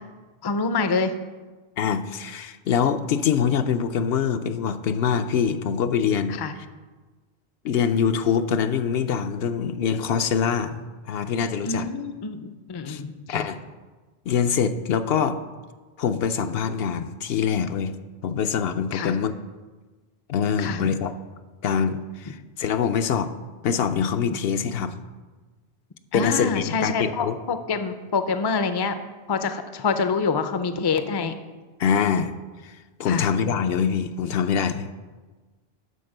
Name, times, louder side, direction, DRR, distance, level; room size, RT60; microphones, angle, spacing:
voice 1, 0.4-1.1 6.3-6.5 11.6-13.5 18.9-19.1 20.6-20.9 26.1-29.0 29.3-31.3 33.1-33.3, left 4 dB, 35° left, 10 dB, 0.4 m, -26 dB
voice 2, 1.8-6.4 7.6-10.8 11.1-11.9 12.9-13.0 13.3-13.6 14.3-15.4 16.0-17.9 18.2-19.3 20.3-21.1 21.6-23.3 23.6-25.0 26.1-27.4 31.8-32.3 32.6-32.7 33.0-34.9, left 7 dB, 75° left, 9 dB, 0.8 m, -24 dB
12.0 x 4.3 x 6.5 m, 1.3 s
omnidirectional pair, 1.1 m